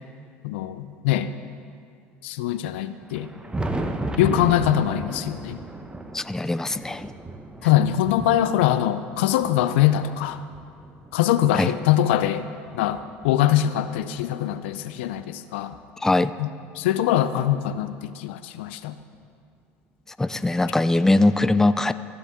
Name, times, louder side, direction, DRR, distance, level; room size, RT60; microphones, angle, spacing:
voice 1, 0.4-1.3 2.2-3.3 4.2-5.6 7.6-10.4 11.1-12.5 12.7-15.7 16.4-16.5 16.8-18.9, left 12 dB, 80° left, 12 dB, 0.4 m, -22 dB
Thunder, 3.0-11.6 12.2-13.9 15.1-15.2 15.7-15.8 17.7-17.8 19.1-19.2 20.8-20.9, right 2 dB, 15° right, 0.8 m, -35 dB
voice 2, 6.1-7.1 11.5-11.7 16.0-16.3 20.2-21.9, left 2 dB, 10° left, 13 dB, 0.3 m, -21 dB
15.0 x 6.9 x 3.7 m, 2.5 s
hypercardioid pair, 80°, 6 cm